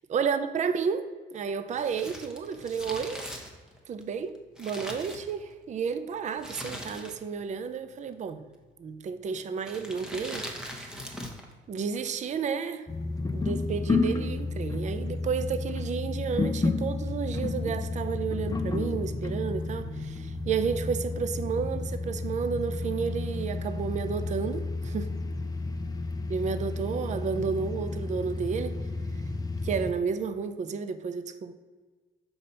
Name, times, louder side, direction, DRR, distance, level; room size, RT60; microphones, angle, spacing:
voice 1, 0.1-3.3 3.9-8.4 8.8-11.1 11.7-12.9 13.3-25.2 26.3-28.8 29.6-31.5, right 6 dB, 35° right, 0.4 m, -32 dB
Crumpling crinkling, 1.7-5.7 6.4-7.4 7.7-7.8 8.6-8.9 9.6-11.5 11.8-11.9, equal, 5° right, 1.0 m, -41 dB
sound 1, 12.9-29.9, left 3 dB, 20° left, 0.6 m, -31 dB
5.1 x 4.2 x 5.5 m
cardioid pair, 90°, 20 cm